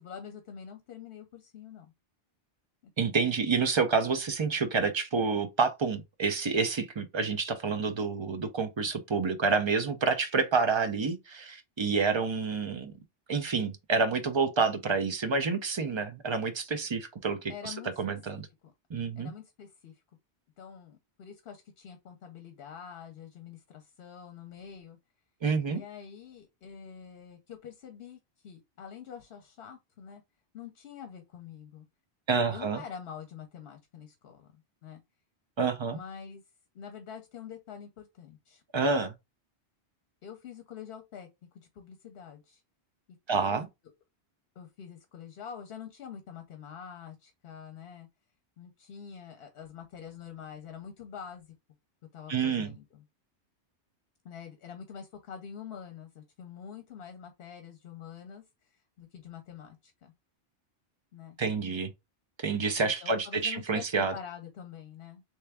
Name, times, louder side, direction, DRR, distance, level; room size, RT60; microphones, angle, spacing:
voice 1, 0.0-1.9 17.5-18.7 19.2-20.0 20.6-25.0 25.7-30.2 30.5-31.8 32.5-35.0 35.9-36.4 36.7-38.6 40.2-41.3 41.5-42.6 43.3-43.6 44.6-48.1 48.6-51.5 52.1-53.0 54.2-58.4 58.7-60.1 61.1-61.4 62.8-65.2, left 7 dB, 65° left, 0.9 m, -46 dB
voice 2, 3.0-12.9 13.3-18.5 18.9-19.3 25.4-25.8 32.3-32.8 35.6-36.0 38.7-39.1 43.3-43.7 52.3-52.7 61.4-61.9 62.4-64.1, right 4 dB, 50° right, 0.3 m, -28 dB
3.3 x 3.1 x 3.3 m
omnidirectional pair, 1.1 m